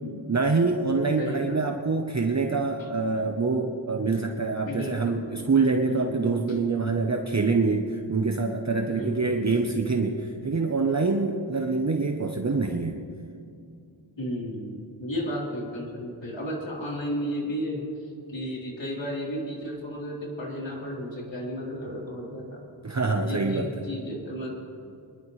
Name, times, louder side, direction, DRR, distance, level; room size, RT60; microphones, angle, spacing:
voice 1, 0.3-13.0 22.8-23.7, right 4 dB, 35° right, 3 dB, 0.9 m, -25 dB
voice 2, 1.2-1.6 4.7-5.3 5.9-6.6 8.9-9.4 14.2-22.6 23.2-24.5, equal, 70° left, -4 dB, 3.9 m, -33 dB
24.5 x 11.5 x 3.3 m, 2.5 s
wide cardioid pair, 65°, 46 cm